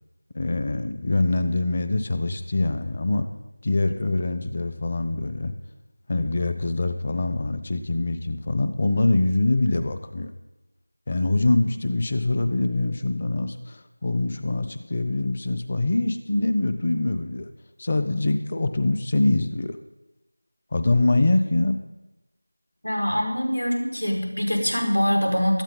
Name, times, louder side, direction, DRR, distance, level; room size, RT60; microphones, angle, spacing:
voice 1, 0.3-3.3 3.6-5.5 6.1-10.3 11.1-17.5 17.8-19.8 20.7-21.8, left 2 dB, 25° left, 9 dB, 0.9 m, -24 dB
voice 2, 22.8-25.6, equal, 85° left, 2 dB, 5.1 m, -24 dB
17.5 x 13.0 x 3.9 m, 1.0 s
figure-of-eight pair, 175°, 0 cm